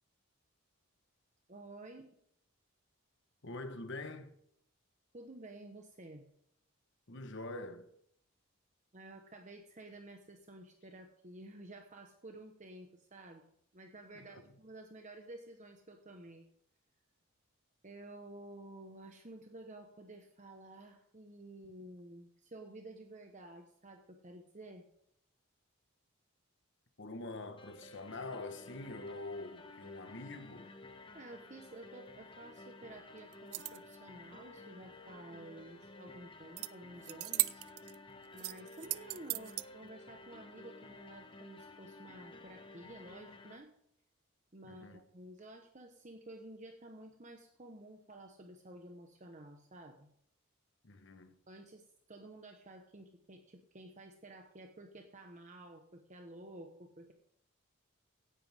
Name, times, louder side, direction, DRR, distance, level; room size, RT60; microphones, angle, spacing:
voice 1, 1.5-2.1 5.1-6.2 8.9-13.5 13.7-16.5 17.8-24.9 31.1-37.6 38.3-43.7 44.5-50.1 51.5-57.1, right 1 dB, 35° right, 1.1 m, -52 dB
voice 2, 3.4-4.4 7.1-7.9 14.1-14.3 27.0-30.7 44.6-45.0 50.8-51.4, left 2 dB, 55° left, 1.2 m, -45 dB
sound 1, 27.6-43.6, left 2 dB, 25° left, 1.0 m, -54 dB
sound 2, 33.3-34.0 36.6-36.7 37.0-37.9 38.4-39.6, right 20 dB, 85° right, 0.4 m, -36 dB
17.0 x 10.5 x 3.5 m
head